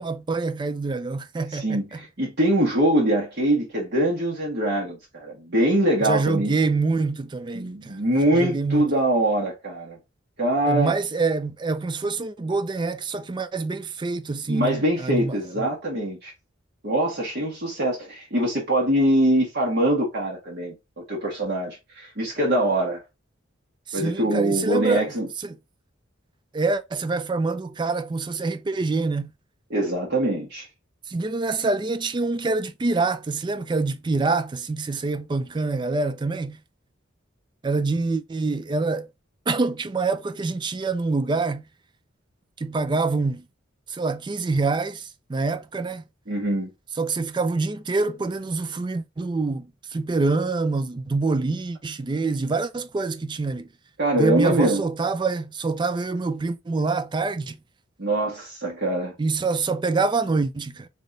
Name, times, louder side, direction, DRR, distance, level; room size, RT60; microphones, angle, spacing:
voice 1, 0.0-2.0 6.0-8.0 8.3-8.9 10.7-15.7 23.9-25.1 25.4-25.6 26.5-29.3 31.1-36.6 37.6-39.1 39.5-41.6 42.6-43.4 43.9-46.0 47.0-53.7 54.2-57.6 59.2-60.9, right 3 dB, 25° right, 0.3 m, -26 dB
voice 2, 1.5-6.5 7.5-10.0 10.4-10.9 14.5-16.3 16.8-20.7 21.1-23.0 23.9-25.3 29.7-30.7 46.3-46.7 54.0-54.8 58.0-59.1, right 1 dB, 55° right, 1.2 m, -23 dB
3.7 x 3.4 x 2.6 m
head